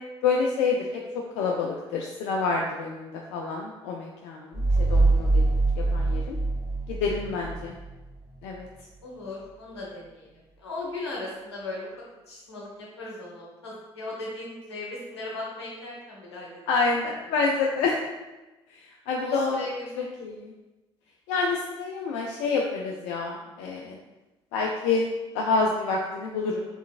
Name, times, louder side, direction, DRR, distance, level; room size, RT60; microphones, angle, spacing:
voice 1, 0.2-1.0 1.4-6.4 6.9-7.7 8.4-8.7 16.7-18.0 19.1-19.6 20.0-20.5 21.3-24.0 24.5-25.1 25.3-26.6, left 4 dB, 65° left, -1 dB, 0.4 m, -28 dB
sound 1, 4.5-7.9, right 2 dB, 20° right, 1.4 m, -24 dB
voice 2, 9.0-10.3 10.6-11.9 12.3-16.5 19.1-20.1, left 2 dB, 85° left, -4 dB, 0.8 m, -37 dB
3.7 x 3.3 x 2.4 m, 1.1 s
figure-of-eight pair, 50°, 14 cm